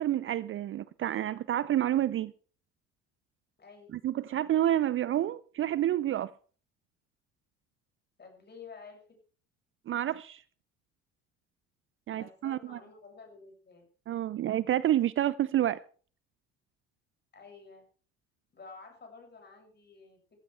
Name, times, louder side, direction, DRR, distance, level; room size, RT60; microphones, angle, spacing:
voice 1, 0.0-2.3 3.9-6.3 9.9-10.4 12.1-12.8 14.1-15.8, right 12 dB, 35° right, 0.6 m, -29 dB
voice 2, 3.6-3.9 8.2-9.2 12.1-13.9 17.3-17.8 18.5-20.2, left 4 dB, 30° left, 7.3 m, -51 dB
17.0 x 14.5 x 3.5 m
figure-of-eight pair, 60°, 34 cm